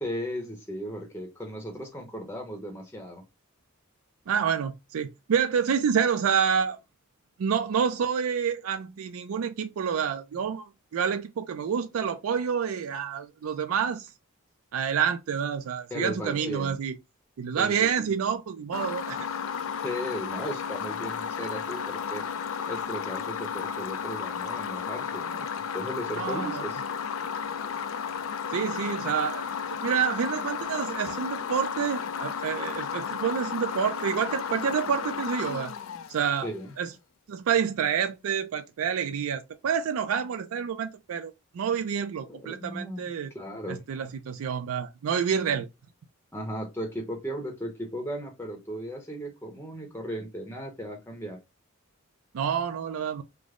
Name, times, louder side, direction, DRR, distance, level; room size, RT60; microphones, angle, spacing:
voice 1, 0.0-3.2 15.9-16.8 17.6-17.7 18.0-18.1 19.8-22.3 22.6-25.5 25.7-26.8 36.4-36.7 42.3-43.0 43.3-43.8 46.3-51.4, equal, 10° left, 0.7 m, -36 dB
voice 2, 4.3-6.8 7.4-14.1 14.7-16.9 17.4-19.3 26.2-26.7 28.5-29.4 29.8-35.7 36.1-36.5 36.8-36.9 37.3-43.3 43.7-45.7 52.3-53.2, right 7 dB, 80° right, 0.4 m, -28 dB
sound 1, 18.7-36.7, left 7 dB, 65° left, 0.4 m, -33 dB
3.3 x 2.0 x 3.6 m
head